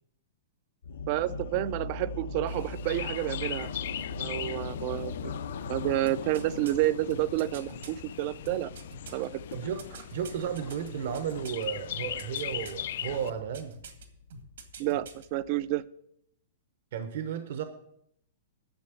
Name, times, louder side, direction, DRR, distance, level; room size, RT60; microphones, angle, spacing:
sound 1, 0.8-15.7, left 4 dB, 90° left, 1.0 m, -41 dB
voice 1, 1.1-3.7 4.2-5.3 5.7-8.7 9.1-9.4 14.8-15.8, right 15 dB, 35° right, 0.4 m, -30 dB
Chirp tweet, 2.5-13.3, left 11 dB, 60° left, 0.4 m, -40 dB
sound 2, 6.1-7.9 8.4-11.7 11.9-12.8 13.3-14.0 14.3-15.3 15.6-15.7, right 4 dB, 75° right, 1.8 m, -46 dB
voice 2, 9.5-9.8 10.1-13.7 16.9-17.6, right 8 dB, 55° right, 0.9 m, -33 dB
10.5 x 7.0 x 6.9 m
hypercardioid pair, 165°, 0 cm